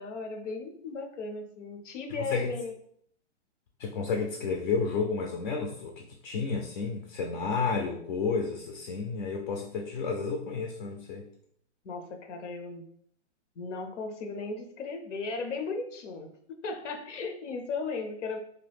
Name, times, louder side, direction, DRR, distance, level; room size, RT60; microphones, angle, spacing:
voice 1, 0.0-2.7 11.8-12.9 13.6-18.4, left 4 dB, 85° left, 6 dB, 0.7 m, -36 dB
voice 2, 3.8-11.2, left 4 dB, 45° left, 1 dB, 0.4 m, -31 dB
2.8 x 2.2 x 3.4 m, 0.66 s
hypercardioid pair, 155°, 36 cm